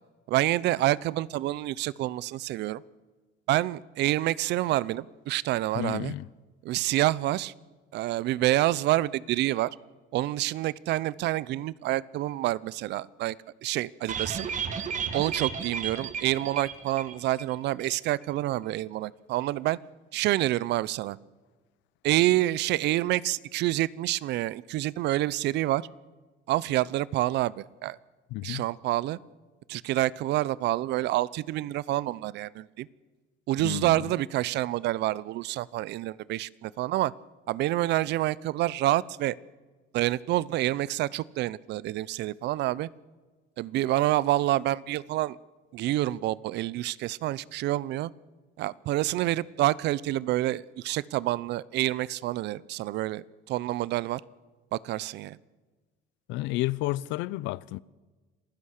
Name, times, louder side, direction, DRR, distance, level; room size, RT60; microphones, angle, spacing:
voice 1, 0.3-2.8 3.5-6.2 6.6-7.5 7.9-9.7 10.1-13.4 13.6-14.5 15.1-19.8 20.1-21.2 22.0-25.9 26.5-28.0 28.4-29.2 29.7-32.9 33.5-37.1 37.5-39.3 39.9-42.9 43.6-45.4 45.7-48.1 48.6-54.2 54.7-55.4, right 16 dB, 65° right, 0.7 m, -27 dB
voice 2, 5.7-6.3 28.3-28.6 33.6-33.9 56.3-57.8, left 18 dB, 75° left, 0.6 m, -31 dB
sound 1, 14.1-17.5 17.8-17.9 18.2-18.3, right 7 dB, 40° right, 2.0 m, -33 dB
27.5 x 15.5 x 6.6 m
cardioid pair, 120°, 19 cm